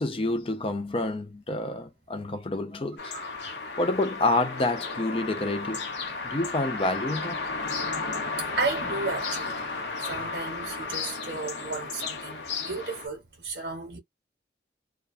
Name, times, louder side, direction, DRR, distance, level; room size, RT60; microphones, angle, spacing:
voice 1, 0.0-3.1 3.8-5.8 6.2-7.4, left 2 dB, 30° left, 0.5 m, -28 dB
sound 1, 3.0-13.1, left 4 dB, 80° left, 0.9 m, -34 dB
voice 2, 8.6-9.5 10.0-14.0, right 3 dB, 65° right, 0.8 m, -33 dB
2.4 x 2.2 x 2.4 m
head